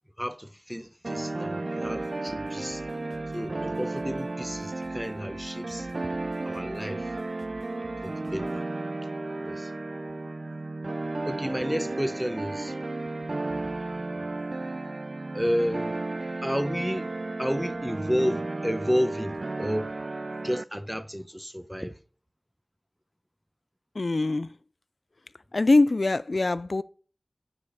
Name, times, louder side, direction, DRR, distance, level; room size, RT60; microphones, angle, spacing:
voice 1, 0.2-2.8 3.3-5.9 6.4-7.1 8.0-8.7 9.4-9.7 11.2-12.8 15.3-16.0 16.4-17.1 17.4-19.9 20.4-22.0, equal, 5° right, 0.8 m, -31 dB
sound 1, 1.0-20.6, right 2 dB, 75° right, 0.3 m, -33 dB
sound 2, 1.8-8.6, right 1 dB, 35° right, 1.6 m, -52 dB
voice 2, 24.0-24.5 25.5-26.8, left 2 dB, 80° left, 0.3 m, -23 dB
9.8 x 4.9 x 4.1 m
wide cardioid pair, 40°, 0 cm